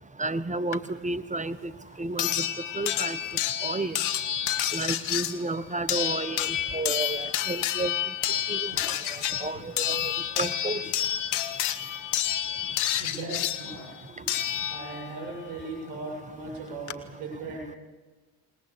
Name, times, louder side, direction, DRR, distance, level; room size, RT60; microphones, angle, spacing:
voice 1, 0.2-1.7 2.0-2.4 2.7-3.2 3.6-4.0 4.7-7.9 8.5-8.7 9.4-10.8, right 2 dB, 15° right, 15 dB, 1.2 m, -31 dB
sound 1, 0.7-0.8 2.2-15.2 16.4-16.5 16.9-17.0, left 11 dB, 75° left, 1.5 m, -29 dB
voice 2, 13.0-14.3 14.7-17.8, right 3 dB, 85° right, 0 dB, 7.1 m, -38 dB
20.5 x 20.0 x 8.4 m, 1.3 s
supercardioid pair, 65°, 49 cm